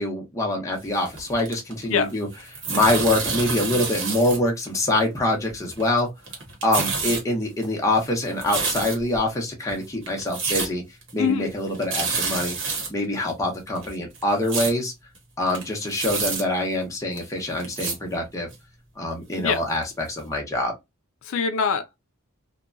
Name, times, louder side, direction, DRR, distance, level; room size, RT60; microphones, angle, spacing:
voice 1, 0.0-2.3 2.7-6.1 6.6-10.8 11.1-14.9 15.4-18.5 19.0-20.7, left 1 dB, 15° left, 0.8 m, -25 dB
sound 1, 0.9-2.0 2.3-4.4 4.7-4.8 5.5-6.0 6.2-7.2 7.6-9.2 9.7-9.8 10.1-10.7 11.0-11.1 11.5-11.6 11.7-12.9 13.3-13.4 13.8-14.7 15.2-15.3 15.5-16.4 17.2-17.3 17.6-18.0 18.5-18.6 19.3-19.4 19.8-19.9 20.2-20.3, right 4 dB, 60° right, 1.1 m, -28 dB
voice 2, 11.2-11.5 19.4-19.6 21.2-22.0, left 6 dB, 70° left, 0.4 m, -23 dB
2.8 x 2.2 x 2.5 m
head